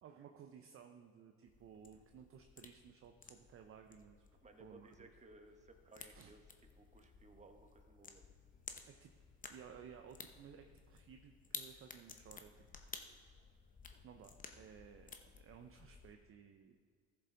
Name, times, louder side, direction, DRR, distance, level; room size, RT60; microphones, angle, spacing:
voice 1, 0.0-4.2 4.6-5.1 6.1-6.3 8.8-9.1 9.5-12.5 14.0-16.7, right 7 dB, 35° right, 5 dB, 0.7 m, -57 dB
sound 1, 1.4-16.2, left 5 dB, 20° left, 0.9 m, -55 dB
voice 2, 4.4-6.4 6.8-8.4 15.1-15.4, right 2 dB, 20° right, 4 dB, 1.2 m, -61 dB
14.5 x 6.9 x 3.9 m, 2.1 s
supercardioid pair, 90°, 37 cm